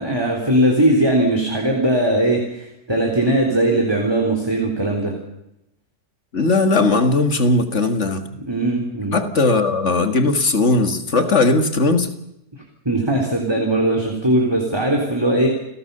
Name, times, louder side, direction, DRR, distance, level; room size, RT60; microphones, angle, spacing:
voice 1, 0.0-5.1 8.5-9.2 12.9-15.5, right 1 dB, 15° right, 1 dB, 3.6 m, -19 dB
voice 2, 6.3-8.3 9.1-12.1, left 3 dB, 40° left, 8 dB, 2.3 m, -18 dB
30.0 x 16.5 x 6.9 m, 0.84 s
omnidirectional pair, 1.9 m